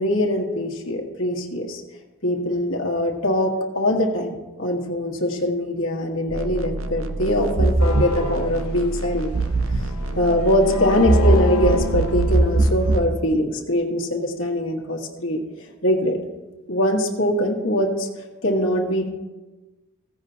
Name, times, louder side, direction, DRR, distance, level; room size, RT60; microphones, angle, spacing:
voice 1, 0.0-1.8 2.2-9.3 9.7-16.2 16.7-18.1 18.4-19.1, left 1 dB, 60° left, 0 dB, 1.5 m, -22 dB
sound 1, 6.3-13.1, right 2 dB, 65° right, 0.7 m, -22 dB
sound 2, 7.8-12.9, left 2 dB, 85° left, 1.0 m, -30 dB
15.5 x 9.8 x 2.8 m, 1.2 s
head